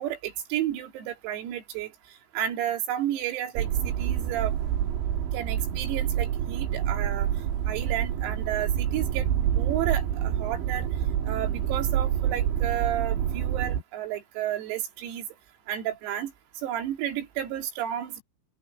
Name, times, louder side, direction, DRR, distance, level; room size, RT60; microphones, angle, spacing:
voice 1, 0.0-1.9 2.4-4.5 5.3-7.3 7.7-9.3 9.6-10.9 11.3-15.3 15.7-16.3 16.6-18.2, right 11 dB, 90° right, 5.7 m, -32 dB
sound 1, 3.6-13.8, right 10 dB, 65° right, 3.7 m, -27 dB
open air
omnidirectional pair, 6.0 m